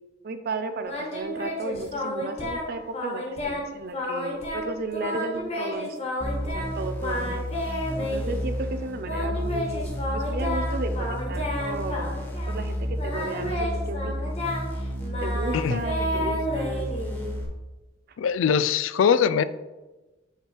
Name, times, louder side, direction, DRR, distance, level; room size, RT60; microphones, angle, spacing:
voice 1, 0.2-6.0 6.4-7.4 8.0-9.9 10.1-12.2 12.4-14.3 15.2-16.9, right 3 dB, 50° right, 8 dB, 0.5 m, -34 dB
Singing, 0.8-2.7 2.9-3.6 3.9-4.7 4.9-6.7 7.0-8.4 9.0-12.6 13.0-17.4, left 1 dB, 35° left, 1.5 m, -31 dB
sound 1, 6.2-17.5, equal, 10° left, 1.0 m, -31 dB
voice 2, 18.2-19.4, left 7 dB, 80° left, 14 dB, 0.3 m, -22 dB
7.9 x 3.3 x 4.5 m, 1.1 s
head